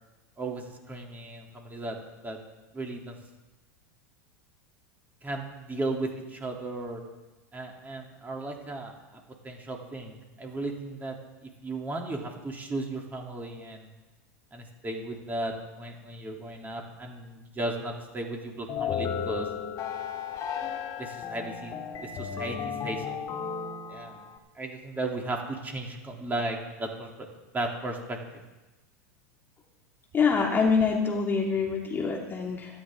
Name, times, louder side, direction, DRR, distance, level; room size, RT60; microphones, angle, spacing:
voice 1, 0.4-2.0 2.2-2.4 2.7-3.2 5.2-7.0 7.5-8.9 9.4-11.1 11.6-13.9 14.5-19.5 21.0-21.7 22.0-22.6 22.8-23.1 23.9-24.2 24.5-27.1 27.5-28.2, right 2 dB, 20° right, 1 dB, 2.9 m, -35 dB
sound 1, 18.7-24.4, left 7 dB, 40° left, 2.3 m, -34 dB
voice 2, 30.1-32.8, left 5 dB, 25° left, -1 dB, 2.6 m, -25 dB
24.0 x 10.0 x 3.7 m, 1.1 s
hypercardioid pair, 105°, 9 cm